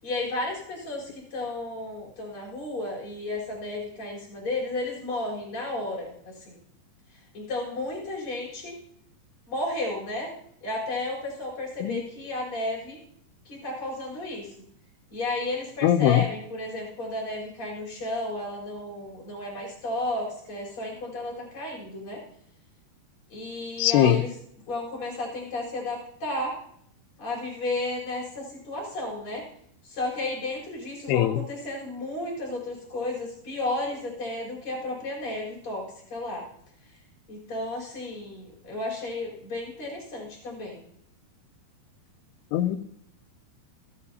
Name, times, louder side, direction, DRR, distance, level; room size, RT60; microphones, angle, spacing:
voice 1, 0.0-6.6 7.3-8.8 9.5-10.3 10.6-13.0 13.4-14.5 15.1-22.2 23.3-24.4 24.7-26.6 27.2-29.4 29.8-36.4 37.3-40.8, left 2 dB, 30° left, -4 dB, 4.8 m, -33 dB
voice 2, 15.8-16.2 23.8-24.2 31.1-31.4 42.5-42.8, left 13 dB, 80° left, 12 dB, 2.6 m, -21 dB
28.0 x 9.5 x 2.8 m, 0.70 s
omnidirectional pair, 4.9 m